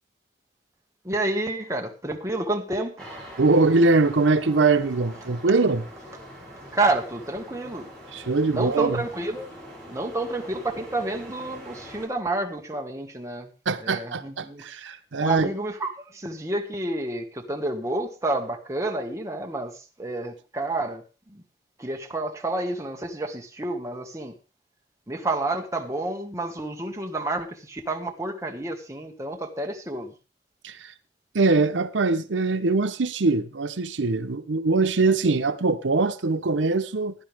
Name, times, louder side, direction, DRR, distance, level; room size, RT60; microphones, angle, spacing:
voice 1, 1.0-3.1 6.7-7.9 8.5-9.5 9.9-13.5 13.8-14.7 15.2-21.4 21.8-24.3 25.1-30.1, right 2 dB, 15° right, 1.7 m, -29 dB
sound 1, 3.0-12.1, equal, 5° left, 7.7 m, -43 dB
voice 2, 3.4-5.8 8.1-9.0 13.7-15.5 30.6-30.9 31.3-37.1, right 3 dB, 90° right, 0.8 m, -22 dB
16.0 x 11.0 x 3.5 m
head